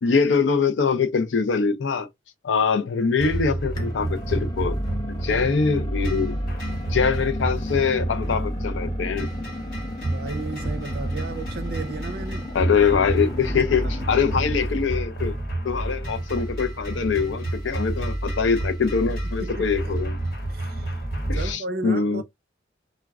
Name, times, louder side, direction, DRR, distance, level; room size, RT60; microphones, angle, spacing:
voice 1, 0.0-2.1 2.4-4.8 5.1-6.4 6.9-9.3 12.5-15.4 15.6-20.2 21.3-22.2, left 5 dB, 80° left, 0.5 m, -23 dB
sound 1, 3.2-21.5, right 1 dB, 50° left, 1.4 m, -29 dB
sound 2, 3.8-14.7, left 2 dB, 20° left, 0.6 m, -37 dB
voice 2, 10.0-12.5 13.2-13.3 13.6-13.7 19.4-20.0 20.5-21.0 21.3-22.2, right 3 dB, 50° right, 0.5 m, -34 dB
2.3 x 2.2 x 3.3 m
head